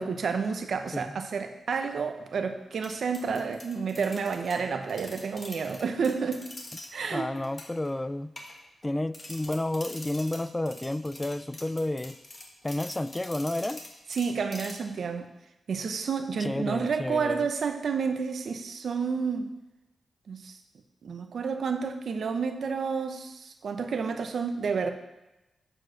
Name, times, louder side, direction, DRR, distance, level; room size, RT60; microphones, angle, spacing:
voice 1, 0.0-6.5 6.9-7.3 14.1-15.2 15.7-19.5 20.3-20.6 21.0-24.9, right 5 dB, 70° right, 7 dB, 0.9 m, -30 dB
sound 1, 2.8-6.9 7.4-7.9 8.4-8.9 9.1-15.0, left 1 dB, 35° left, 1.7 m, -45 dB
voice 2, 7.1-8.3 8.8-12.2 12.6-13.8 16.4-17.5, left 1 dB, 20° left, 15 dB, 0.3 m, -31 dB
8.9 x 4.7 x 6.4 m, 0.97 s
cardioid pair, 60°, 0 cm